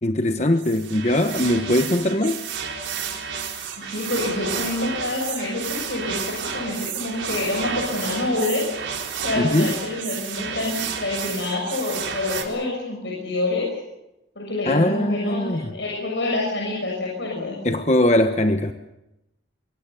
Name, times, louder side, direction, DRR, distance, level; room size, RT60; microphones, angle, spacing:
voice 1, 0.0-2.4 9.4-9.7 14.6-15.7 17.6-18.7, left 1 dB, 35° left, 7 dB, 1.1 m, -21 dB
sound 1, 0.6-12.4, right 6 dB, 80° right, 4.1 m, -31 dB
voice 2, 3.8-8.6 9.2-13.7 14.3-17.6, left 2 dB, 70° left, -2 dB, 6.7 m, -27 dB
25.5 x 23.0 x 7.0 m, 0.91 s
head